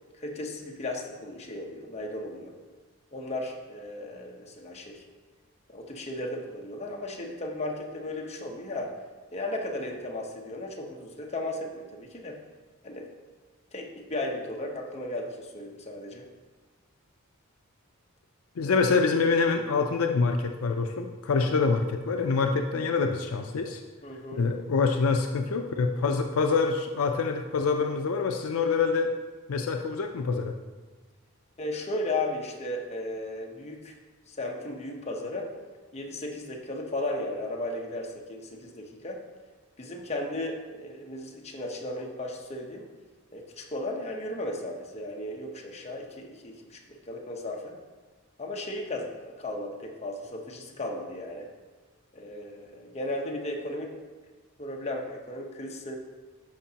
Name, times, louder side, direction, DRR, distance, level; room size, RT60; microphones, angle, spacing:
voice 1, 0.2-2.5 3.1-5.0 5.7-9.0 9.3-12.4 12.8-13.1 13.7-16.3 21.4-21.6 24.0-24.5 31.6-34.0 34.3-35.5 35.9-39.2 39.8-42.9 43.3-47.8 48.4-51.5 52.1-54.0 54.6-55.9, left 1 dB, 30° left, 1 dB, 0.9 m, -35 dB
voice 2, 18.6-23.8 24.3-29.1 29.5-30.6, left 4 dB, 70° left, 4 dB, 0.4 m, -26 dB
12.5 x 5.2 x 2.8 m, 1.3 s
head